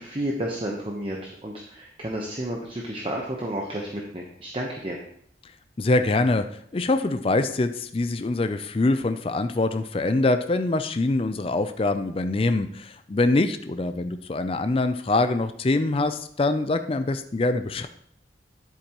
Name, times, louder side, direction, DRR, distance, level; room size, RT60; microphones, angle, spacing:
voice 1, 0.0-5.0, right 1 dB, 30° right, -1 dB, 1.0 m, -31 dB
voice 2, 5.8-6.5 6.7-17.9, left 2 dB, 30° left, 9 dB, 0.4 m, -24 dB
11.0 x 8.3 x 3.0 m, 0.66 s
head